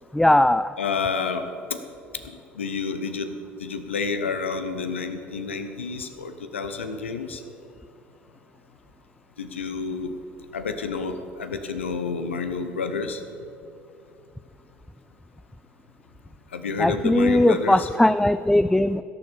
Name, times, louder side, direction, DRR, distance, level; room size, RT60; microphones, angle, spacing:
voice 1, 0.1-0.7 16.8-19.0, left 1 dB, 5° left, 13 dB, 0.3 m, -19 dB
voice 2, 0.8-1.8 2.2-3.3 3.6-7.4 9.4-10.1 10.5-13.2 16.5-17.9, left 5 dB, 85° left, 8 dB, 0.9 m, -29 dB
16.5 x 7.0 x 7.1 m, 2.5 s
hypercardioid pair, 65°, 6 cm